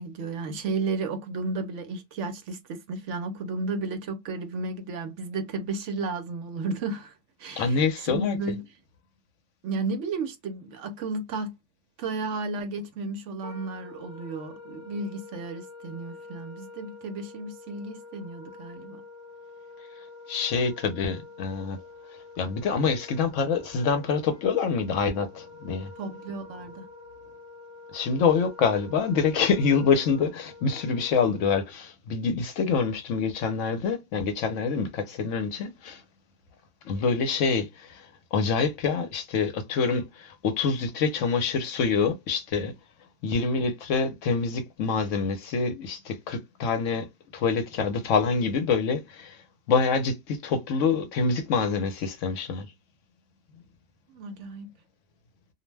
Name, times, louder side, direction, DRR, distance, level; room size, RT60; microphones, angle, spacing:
voice 1, 0.0-7.1 7.4-7.8 8.0-8.6 9.6-11.6 12.0-19.0 26.0-26.9 54.1-54.7, right 3 dB, 70° right, 0.9 m, -33 dB
voice 2, 7.6-8.4 20.3-21.8 22.4-25.9 27.9-36.0 36.8-42.7 43.2-47.1 47.3-49.4 49.7-52.7, left 5 dB, 75° left, 1.0 m, -26 dB
Wind instrument woodwind instrument, 13.4-31.5, left 3 dB, 50° left, 0.9 m, -47 dB
2.5 x 2.1 x 3.2 m
omnidirectional pair, 1.3 m